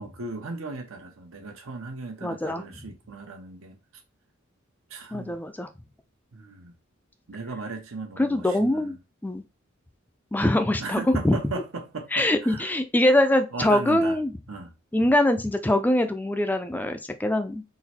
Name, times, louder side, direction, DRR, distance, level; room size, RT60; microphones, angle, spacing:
voice 1, 0.0-4.0 4.9-5.4 6.3-6.7 7.3-9.0 10.8-12.7 13.5-14.2 14.5-14.7, right 3 dB, 85° right, 1.0 m, -37 dB
voice 2, 2.2-2.6 5.1-5.7 8.2-8.9 9.2-9.4 10.3-11.4 12.1-14.3 14.9-17.6, left 1 dB, 10° left, 0.3 m, -23 dB
3.8 x 2.1 x 4.3 m
head